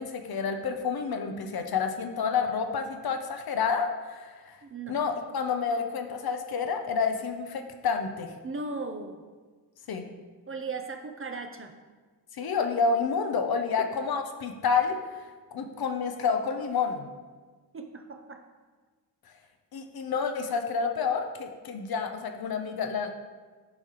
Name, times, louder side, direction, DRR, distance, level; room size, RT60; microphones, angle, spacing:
voice 1, 0.0-4.6 4.9-8.3 9.9-10.1 12.3-17.1 19.7-23.1, left 5 dB, 65° left, 6 dB, 0.6 m, -29 dB
voice 2, 4.6-5.0 8.4-9.2 10.5-11.7 17.7-18.4, right 3 dB, 35° right, 5 dB, 0.5 m, -37 dB
8.6 x 4.8 x 2.9 m, 1.4 s
wide cardioid pair, 150°, 40 cm